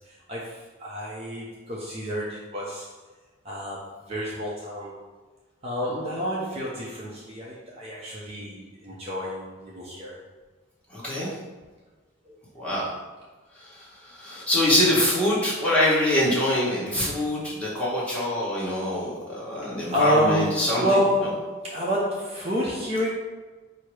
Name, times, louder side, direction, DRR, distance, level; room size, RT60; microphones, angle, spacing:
voice 1, 0.1-2.9 3.4-5.0 5.6-10.2 19.9-23.1, equal, 30° right, -5 dB, 0.5 m, -28 dB
voice 2, 10.9-11.4 12.5-12.9 13.5-21.0, left 1 dB, 5° left, -8 dB, 1.1 m, -24 dB
4.6 x 2.0 x 4.6 m, 1.3 s
head